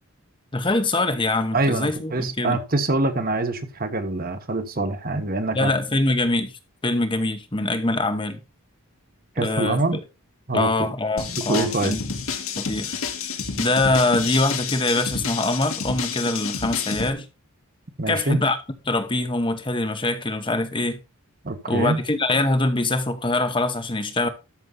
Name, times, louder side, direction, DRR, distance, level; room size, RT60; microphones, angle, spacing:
voice 1, 0.5-2.6 5.5-6.5 6.8-8.4 9.4-10.0 10.5-12.0 12.6-13.0 13.6-17.3 18.1-18.6 18.9-21.0 21.7-24.3, left 2 dB, 20° left, 1.0 m, -23 dB
voice 2, 1.5-5.7 9.3-10.0 10.5-10.9 11.5-11.9 18.0-18.4 21.4-22.0, right 2 dB, 40° right, 1.3 m, -24 dB
sound 1, 11.2-17.1, left 5 dB, 70° left, 1.9 m, -29 dB
13.0 x 6.3 x 3.9 m
head